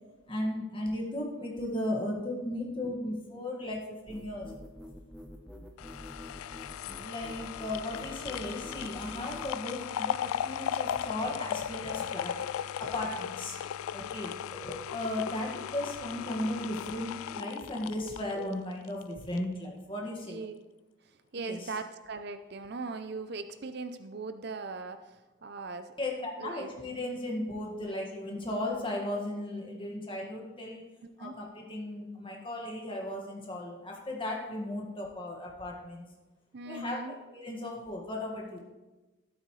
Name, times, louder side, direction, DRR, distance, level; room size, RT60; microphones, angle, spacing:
voice 1, 0.3-4.5 7.0-12.5 12.8-13.6 13.9-20.4 21.3-21.7 26.0-30.8 31.2-36.1 36.6-38.6, left 1 dB, 25° left, -1 dB, 1.8 m, -36 dB
sound 1, 4.1-9.5, equal, 5° right, 0.8 m, -47 dB
sound 2, 5.8-19.0 19.4-19.5, left 9 dB, 85° left, 0.3 m, -37 dB
voice 2, 21.3-25.2 25.4-26.0 26.4-26.7 31.2-31.4 36.5-37.1, right 3 dB, 50° right, 10 dB, 0.5 m, -39 dB
13.0 x 12.0 x 3.2 m, 1.2 s
head